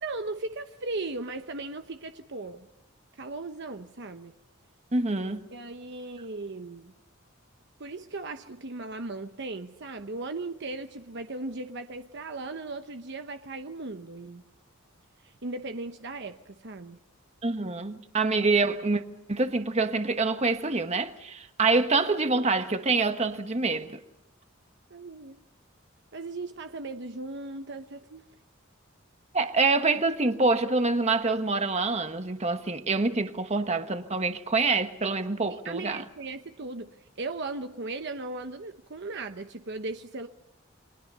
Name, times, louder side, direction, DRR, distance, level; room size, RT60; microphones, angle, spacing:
voice 1, 0.0-2.7 3.2-4.3 5.5-6.9 7.8-14.4 15.2-17.0 24.9-25.4 26.1-28.3 35.5-40.3, right 3 dB, 60° right, 1.0 m, -37 dB
voice 2, 4.9-5.5 17.4-19.0 19.3-24.0 29.3-36.0, right 3 dB, 35° right, 1.3 m, -26 dB
29.5 x 23.0 x 5.6 m
head